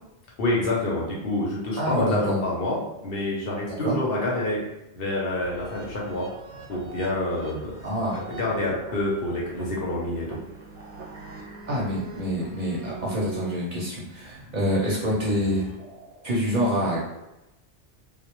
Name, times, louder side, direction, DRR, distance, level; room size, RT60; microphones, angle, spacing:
voice 1, 0.4-4.6 4.9-6.3 6.7-7.7 8.3-10.4, left 1 dB, 65° left, -3 dB, 0.8 m, -27 dB
voice 2, 1.8-2.4 3.8-3.9 7.8-8.2 11.7-15.7 16.2-17.0, equal, 50° right, -5 dB, 0.6 m, -26 dB
sound 1, 5.4-16.4, right 4 dB, 90° right, 0.9 m, -43 dB
2.1 x 2.1 x 2.8 m, 0.94 s
omnidirectional pair, 1.1 m